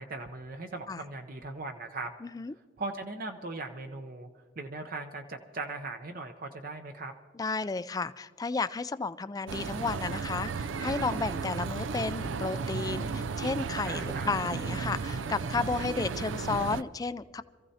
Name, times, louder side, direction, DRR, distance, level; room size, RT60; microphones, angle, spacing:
voice 1, 0.0-2.1 2.8-4.3 4.6-7.1 13.8-14.3, right 3 dB, 50° right, 5 dB, 0.7 m, -39 dB
voice 2, 2.2-2.5 7.3-17.4, left 4 dB, 20° left, 14 dB, 0.3 m, -33 dB
sound 1, 9.5-16.8, right 5 dB, 85° right, 0.4 m, -34 dB
26.5 x 15.0 x 2.8 m, 1.5 s
head